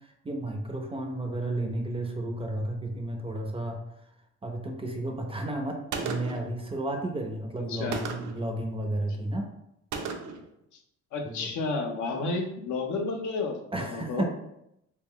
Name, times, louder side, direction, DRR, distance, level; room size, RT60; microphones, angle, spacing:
voice 1, 0.2-3.8 4.4-9.5 11.3-11.5 13.7-14.2, right 1 dB, 20° right, 2 dB, 0.4 m, -32 dB
Gunshot gunfire, 5.9-6.5 7.9-8.4 9.9-10.5, right 5 dB, 75° right, 0.5 m, -34 dB
voice 2, 7.6-8.0 10.7-10.8 11.1-14.2, left 3 dB, 75° left, 3 dB, 0.6 m, -31 dB
2.3 x 2.0 x 3.6 m, 0.80 s
cardioid pair, 90°, 30 cm